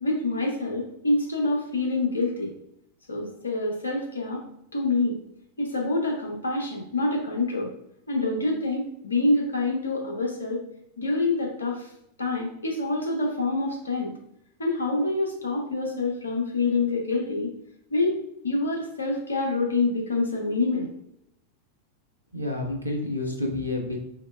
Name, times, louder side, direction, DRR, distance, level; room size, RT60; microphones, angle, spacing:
voice 1, 0.0-2.5 3.1-4.4 4.7-5.2 5.6-7.7 8.1-10.6 11.0-11.9 12.2-14.1 14.6-17.5 17.9-18.2 18.4-20.9, left 2 dB, 75° left, 0 dB, 0.8 m, -26 dB
voice 2, 22.3-24.1, left 2 dB, 90° right, 2 dB, 0.6 m, -29 dB
3.8 x 3.0 x 2.4 m, 0.78 s
figure-of-eight pair, 90°, 0 cm